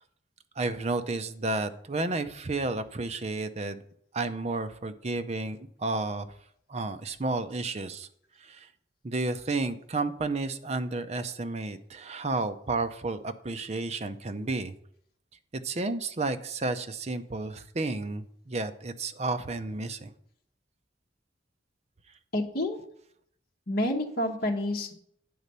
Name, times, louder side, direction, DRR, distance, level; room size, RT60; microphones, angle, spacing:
voice 1, 0.6-3.8 4.1-6.3 6.7-8.1 8.4-8.7 9.0-14.7 15.5-20.1, right 3 dB, 35° right, 9 dB, 0.6 m, -32 dB
voice 2, 22.3-22.8 23.7-24.9, left 1 dB, 55° left, 1 dB, 1.1 m, -28 dB
9.5 x 4.2 x 6.7 m, 0.67 s
head